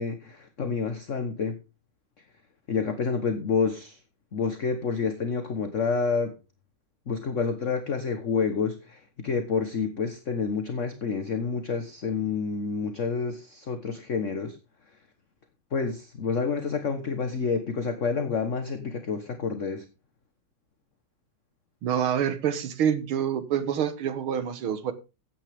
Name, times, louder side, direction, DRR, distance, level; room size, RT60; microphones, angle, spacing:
voice 1, 0.0-1.6 2.7-4.0 4.3-6.3 7.1-14.6 15.7-19.9, left 5 dB, 40° left, 1.4 m, -28 dB
voice 2, 21.8-24.9, right 9 dB, 90° right, 2.2 m, -27 dB
15.0 x 9.5 x 3.6 m
omnidirectional pair, 2.3 m